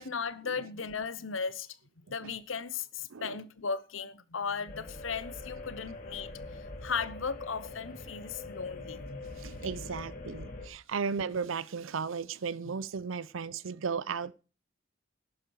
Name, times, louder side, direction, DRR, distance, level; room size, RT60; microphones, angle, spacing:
voice 1, 0.0-9.6 12.6-12.7, left 5 dB, 75° left, 1.0 m, -37 dB
sound 1, 4.7-10.7, left 2 dB, 45° left, 2.8 m, -43 dB
voice 2, 9.4-14.3, right 5 dB, 80° right, 0.6 m, -35 dB
12.0 x 9.7 x 4.7 m
head